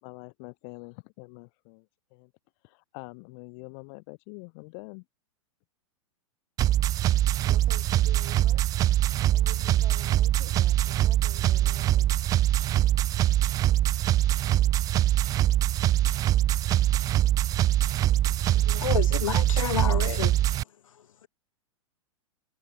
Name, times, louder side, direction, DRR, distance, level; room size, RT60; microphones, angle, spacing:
voice 1, 0.0-2.3 2.6-5.0, left 35 dB, 45° left, 3.7 m, -45 dB
sound 1, 6.6-20.6, right 13 dB, 20° right, 0.3 m, -23 dB
voice 2, 7.4-8.8 9.3-12.2, right 7 dB, 80° right, 7.9 m, -48 dB
voice 3, 18.4-20.4 20.9-21.3, left 9 dB, 75° left, 1.4 m, -31 dB
hypercardioid pair, 110°, 17 cm